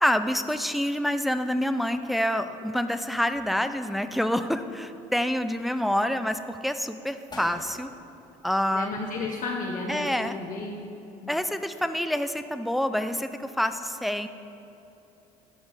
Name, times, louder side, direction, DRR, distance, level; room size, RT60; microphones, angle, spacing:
voice 1, 0.0-7.9 8.4-8.9 9.9-10.4 11.3-14.3, equal, ahead, 9 dB, 0.5 m, -27 dB
sound 1, 3.7-4.3 4.7-5.6 6.2-6.5 7.0-7.1 7.3-9.2 9.5-9.6, left 1 dB, 25° left, 1.9 m, -47 dB
voice 2, 8.7-10.8 11.2-11.3, left 3 dB, 50° left, -1 dB, 1.1 m, -33 dB
13.5 x 5.2 x 4.8 m, 3.0 s
supercardioid pair, 80°, 17 cm